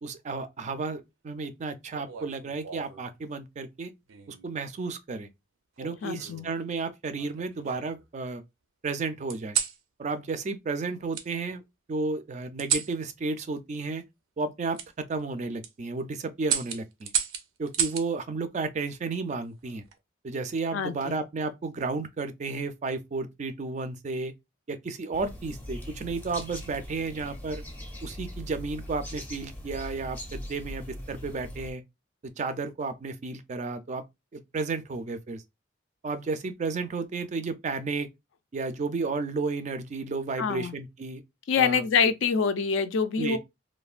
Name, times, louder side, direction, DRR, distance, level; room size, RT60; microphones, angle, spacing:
voice 1, 0.0-3.9 4.3-5.3 5.8-8.4 8.8-9.6 10.0-11.6 11.9-14.0 14.4-17.1 17.6-19.8 20.2-24.3 24.7-27.6 28.0-31.8 32.4-34.0 34.3-35.4 36.0-38.1 38.5-41.2 41.6-41.8 43.2-43.4, right 3 dB, 35° right, 0.3 m, -32 dB
sound 1, 1.9-3.1 4.1-4.5 5.8-6.5 7.2-8.1 9.3-9.8 11.1-11.3 12.6-13.0 14.7-14.9 15.4-15.7 16.4-18.1 19.6-20.0, right 8 dB, 90° right, 0.5 m, -32 dB
voice 2, 6.0-6.5 20.7-21.2 40.4-40.7 41.5-43.4, left 6 dB, 70° left, 0.4 m, -25 dB
sound 2, 25.1-31.7, equal, 10° left, 0.6 m, -41 dB
3.1 x 2.1 x 2.4 m
head